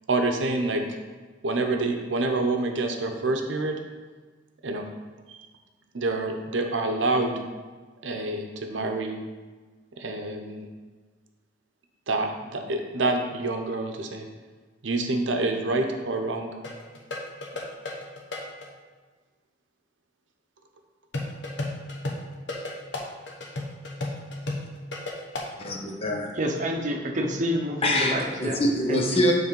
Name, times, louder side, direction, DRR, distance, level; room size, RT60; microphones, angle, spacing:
voice 1, 0.1-0.8 1.4-3.8 4.6-4.8 5.3-5.4 5.9-7.3 8.0-9.2 10.0-10.7 12.1-14.2 14.8-16.5, right 2 dB, 90° right, 4 dB, 0.8 m, -27 dB
sound 1, 16.6-18.7 21.1-25.5, left 2 dB, 70° left, 1.0 m, -33 dB
voice 2, 25.6-26.3 27.8-29.3, left 1 dB, 30° left, 1 dB, 0.8 m, -25 dB
voice 3, 26.4-28.6 28.9-29.3, equal, 40° right, 2 dB, 0.8 m, -28 dB
7.2 x 3.4 x 5.3 m, 1.4 s
head